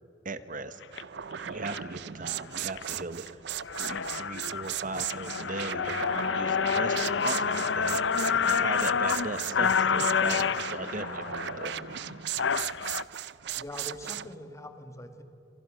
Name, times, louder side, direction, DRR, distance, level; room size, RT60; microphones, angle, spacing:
voice 1, 0.2-1.1 1.5-3.4 3.8-8.0 8.3-11.7, right 3 dB, 45° right, 12 dB, 1.4 m, -38 dB
sound 1, 0.8-1.0 1.7-1.9 2.4-2.8 3.3-3.4 3.6-13.0, left 6 dB, 75° left, 0.6 m, -29 dB
sound 2, 0.9-14.3, right 10 dB, 65° right, 0.5 m, -37 dB
voice 2, 13.5-15.2, left 1 dB, 15° left, 7 dB, 2.0 m, -43 dB
28.0 x 26.0 x 6.5 m, 2.9 s
head